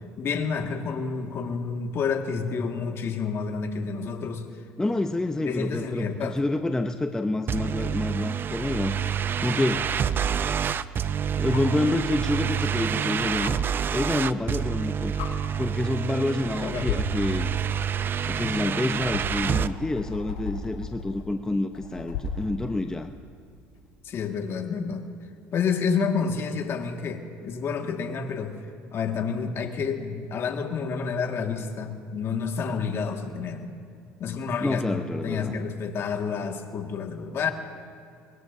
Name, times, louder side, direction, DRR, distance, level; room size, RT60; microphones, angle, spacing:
voice 1, 0.2-4.5 5.4-6.4 16.6-16.9 24.0-25.0 25.5-28.6 28.9-33.7 34.2-37.5, left 5 dB, 50° left, 4 dB, 1.8 m, -29 dB
voice 2, 4.8-9.0 9.4-9.9 11.4-13.6 13.9-15.1 15.6-17.5 18.3-23.1 34.6-35.6, left 2 dB, 10° left, 7 dB, 0.6 m, -28 dB
sound 1, 7.5-19.7, right 8 dB, 40° right, 0.5 m, -28 dB
sound 2, 11.5-11.8 13.4-13.5 14.7-14.8 15.2-15.3 16.2-16.5 16.8-22.5 24.2-24.3, left 4 dB, 85° left, 4.5 m, -35 dB
24.0 x 20.5 x 2.7 m, 2.5 s
supercardioid pair, 90°, 6 cm